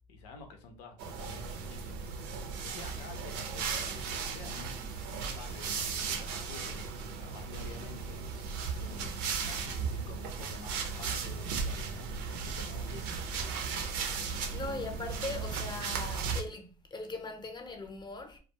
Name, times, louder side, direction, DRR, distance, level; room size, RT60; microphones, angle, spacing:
voice 1, 0.1-2.0 2.6-6.8 7.2-8.2 9.4-12.1 12.4-13.6, left 4 dB, 85° left, 0.6 m, -49 dB
sound 1, 1.0-16.4, right 5 dB, 75° right, 0.5 m, -36 dB
voice 2, 8.8-9.2 12.9-13.3 14.2-18.4, left 3 dB, 20° left, 0.6 m, -41 dB
2.2 x 2.2 x 2.7 m
supercardioid pair, 85°, 20 cm